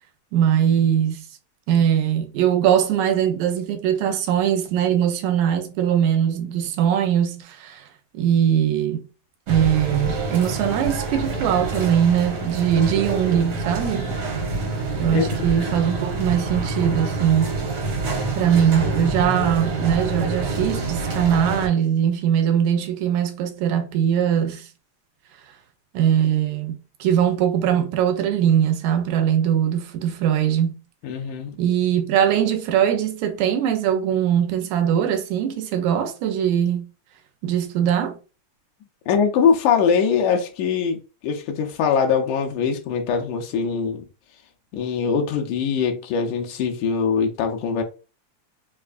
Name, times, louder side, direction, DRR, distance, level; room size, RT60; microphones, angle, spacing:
voice 1, 0.3-1.2 1.7-7.9 8.1-9.0 9.5-14.2 15.0-17.5 18.4-24.7 25.9-30.8 31.6-36.9 37.4-38.2, right 9 dB, 85° right, 2.0 m, -21 dB
sound 1, 9.5-21.7, right 3 dB, 65° right, 2.3 m, -26 dB
voice 2, 31.0-31.6 39.1-44.1 44.7-47.8, left 6 dB, 85° left, 2.2 m, -22 dB
5.3 x 2.3 x 2.4 m
omnidirectional pair, 3.4 m